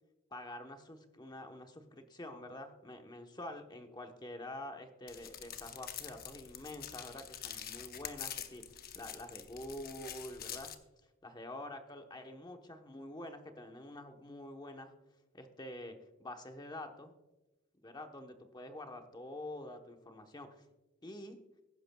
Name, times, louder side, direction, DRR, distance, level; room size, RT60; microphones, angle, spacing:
voice 1, 0.3-10.7 11.2-14.9 15.3-17.1 17.8-20.5 21.0-21.4, left 1 dB, 20° left, 5 dB, 1.0 m, -47 dB
sound 1, 5.1-10.7, left 9 dB, 45° left, 0.8 m, -46 dB
21.0 x 11.0 x 2.3 m, 1.1 s
head